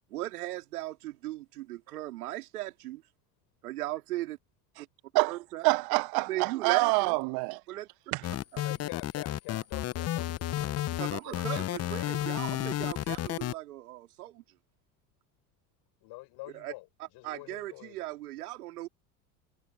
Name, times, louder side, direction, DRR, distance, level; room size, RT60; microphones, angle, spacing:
voice 1, 0.1-3.0 3.6-4.4 5.3-5.7 6.3-7.2 7.7-7.9 11.0-14.4 16.5-16.7 17.2-18.9, right 16 dB, 80° right, 3.2 m, -37 dB
voice 2, 5.6-7.6 8.1-8.2, right 27 dB, 55° right, 0.8 m, -26 dB
sound 1, 8.2-13.5, left 13 dB, 35° left, 0.8 m, -32 dB
voice 3, 8.6-12.1 16.0-18.1, left 22 dB, 60° left, 6.8 m, -47 dB
hypercardioid pair, 80°, 44 cm